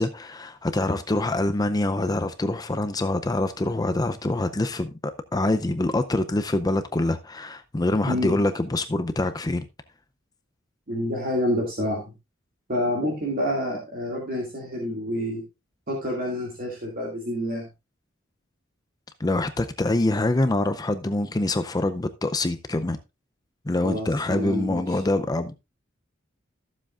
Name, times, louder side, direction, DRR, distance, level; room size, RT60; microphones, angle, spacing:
voice 1, 0.0-9.6 19.2-23.0 23.7-25.5, left 2 dB, 20° left, 0.5 m, -25 dB
voice 2, 10.9-12.0 12.7-15.4 15.9-17.6 23.8-25.0, equal, 50° right, 2.3 m, -28 dB
14.0 x 7.4 x 2.4 m
head